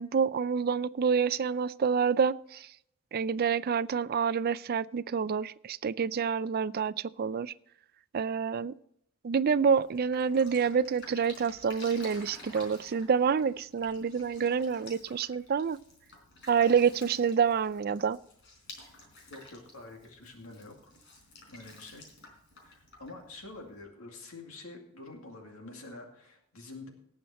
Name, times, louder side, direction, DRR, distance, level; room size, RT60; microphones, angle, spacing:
voice 1, 0.0-2.7 3.1-7.5 8.1-8.7 9.2-15.8 16.5-18.2, right 6 dB, 45° right, 17 dB, 0.4 m, -27 dB
Drip, 9.7-23.8, left 2 dB, 55° left, 4.1 m, -52 dB
voice 2, 19.3-20.8 21.5-22.1 22.6-26.9, left 2 dB, 75° left, 2 dB, 2.3 m, -47 dB
18.0 x 7.2 x 4.2 m, 0.74 s
head